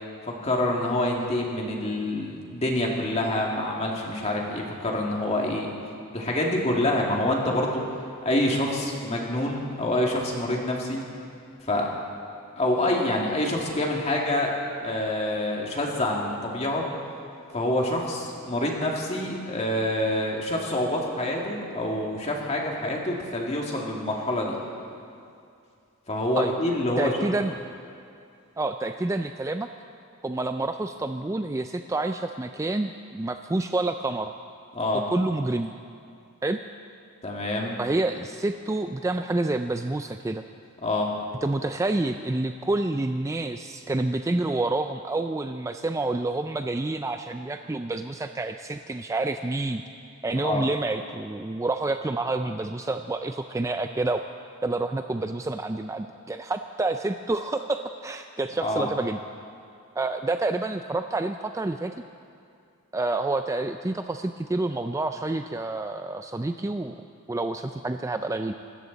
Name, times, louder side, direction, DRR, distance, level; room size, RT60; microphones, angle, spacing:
voice 1, 0.4-5.7 6.1-7.8 8.2-11.0 11.7-11.9 12.6-16.8 17.5-24.6 26.1-27.1 34.7-35.0 37.2-37.8 40.8-41.1 50.3-50.7 58.6-58.9, left 1 dB, 30° left, -1 dB, 2.3 m, -26 dB
voice 2, 27.0-27.6 28.6-29.7 30.2-34.3 35.1-35.7 36.4-36.6 37.8-40.4 41.4-49.8 50.2-54.2 54.6-59.2 60.0-61.9 62.9-67.0 67.3-68.5, right 2 dB, 15° right, 7 dB, 0.3 m, -28 dB
25.0 x 13.5 x 4.1 m, 2.5 s
head